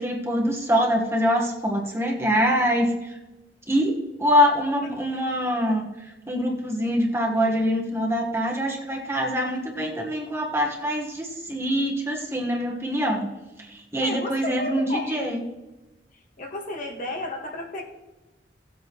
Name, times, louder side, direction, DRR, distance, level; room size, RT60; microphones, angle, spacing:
voice 1, 0.0-3.1 3.7-13.3 13.6-15.4, equal, 15° right, -1 dB, 1.4 m, -24 dB
voice 2, 14.0-15.4 16.4-17.8, left 1 dB, 50° left, 1 dB, 1.7 m, -32 dB
17.5 x 8.1 x 3.1 m, 1.1 s
head